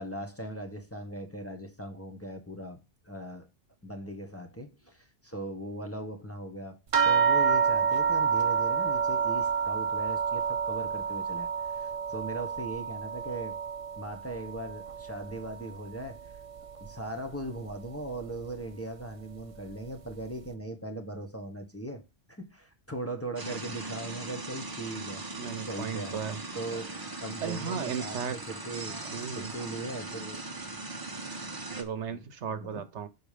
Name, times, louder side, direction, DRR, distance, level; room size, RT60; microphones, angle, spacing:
voice 1, 0.0-3.5 3.8-13.6 13.9-16.3 16.8-22.0 22.3-26.2 26.5-29.0 29.4-30.4 32.1-32.2 32.6-32.8, right 1 dB, 10° left, 1.2 m, -39 dB
sound 1, 6.9-15.8 16.1-16.9 17.7-17.8 18.2-18.4, right 6 dB, 40° right, 0.5 m, -29 dB
sound 2, 23.4-31.8, right 2 dB, 20° right, 1.1 m, -39 dB
voice 2, 25.4-26.4 27.4-28.4 29.0-29.5 31.7-33.1, right 7 dB, 75° right, 1.1 m, -35 dB
6.7 x 4.6 x 5.0 m
omnidirectional pair, 1.2 m